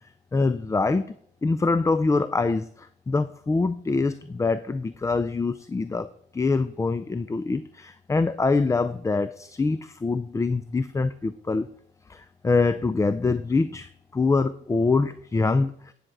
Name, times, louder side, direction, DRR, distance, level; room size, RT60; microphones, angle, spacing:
voice 1, 0.3-1.1 1.4-11.7 12.1-15.9, left 3 dB, 15° left, 14 dB, 0.4 m, -25 dB
9.9 x 6.5 x 4.6 m, 0.67 s
cardioid pair, 90°, 20 cm